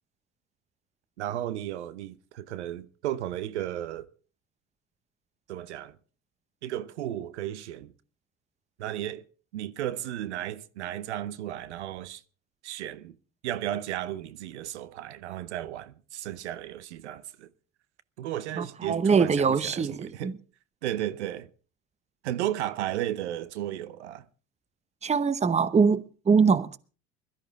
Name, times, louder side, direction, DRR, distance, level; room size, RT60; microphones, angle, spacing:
voice 1, 1.2-4.1 5.5-6.0 6.6-7.9 8.8-9.2 9.5-12.2 12.6-13.2 13.4-17.5 18.2-20.4 20.8-21.5 22.2-24.3, right 12 dB, 80° right, 0.8 m, -34 dB
voice 2, 18.6-20.3 25.0-26.8, right 5 dB, 20° right, 0.9 m, -23 dB
21.5 x 13.0 x 3.6 m
hypercardioid pair, 65°, 34 cm